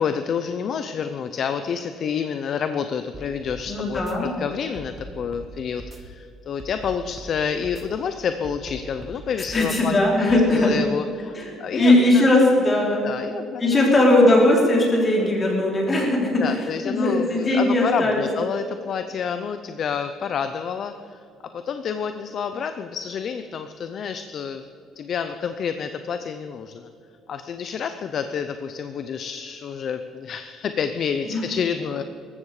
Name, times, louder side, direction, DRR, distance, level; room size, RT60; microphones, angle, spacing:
voice 1, 0.0-12.3 13.0-13.8 16.4-21.2 21.5-24.7 25.0-26.9 27.3-32.0, left 7 dB, 45° left, 9 dB, 0.6 m, -29 dB
sound 1, 3.1-3.6 3.9-4.1 4.7-5.5 5.8-6.0 6.6-7.3 7.6-7.8 8.4-9.2 9.5-9.7 10.3-10.4, right 2 dB, 20° right, 1.5 m, -40 dB
voice 2, 3.7-4.3 9.5-10.7 11.3-13.1 13.6-16.6 16.8-18.3 31.3-31.4, left 1 dB, 25° left, -1 dB, 3.6 m, -19 dB
19.5 x 14.5 x 4.9 m, 2.5 s
cardioid pair, 155°, 0 cm